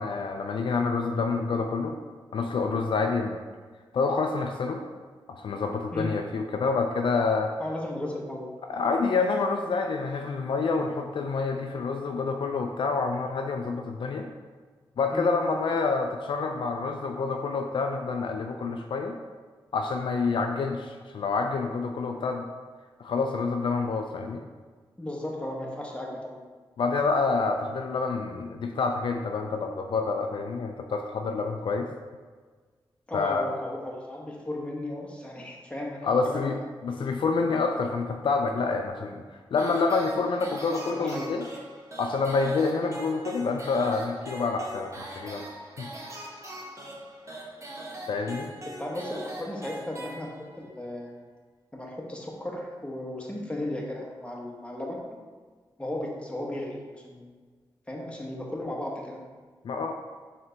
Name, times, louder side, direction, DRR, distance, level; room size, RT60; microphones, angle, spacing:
voice 1, 0.0-2.0 2.3-3.4 3.9-4.8 5.3-7.5 8.7-14.3 15.0-19.1 19.7-22.5 23.0-24.4 26.8-31.9 33.1-33.4 36.0-36.6 36.8-39.2 39.5-41.5 42.0-45.5 45.8-45.9 47.3-47.5 48.1-48.5 59.6-59.9, left 4 dB, 65° left, 4 dB, 0.3 m, -27 dB
voice 2, 7.6-8.5 15.1-15.3 25.0-26.4 33.1-36.6 40.4-41.6 48.3-51.1 51.7-55.0 55.8-57.2 57.9-59.2, left 1 dB, 10° left, -2 dB, 1.0 m, -35 dB
sound 1, 39.6-50.7, right 1 dB, 35° right, 0.9 m, -42 dB
4.3 x 3.2 x 3.9 m, 1.5 s
cardioid pair, 65°, 9 cm